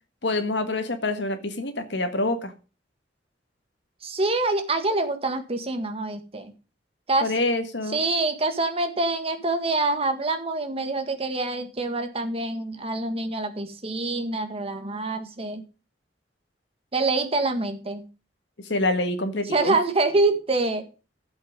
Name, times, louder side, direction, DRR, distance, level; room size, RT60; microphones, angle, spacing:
voice 1, 0.2-2.5 7.2-8.0 18.6-19.8, left 2 dB, 70° left, 8 dB, 1.7 m, -26 dB
voice 2, 4.0-6.5 7.1-7.3 7.9-15.6 16.9-18.0 19.5-20.8, right 2 dB, 35° right, 7 dB, 1.7 m, -26 dB
12.0 x 7.7 x 5.2 m, 0.32 s
head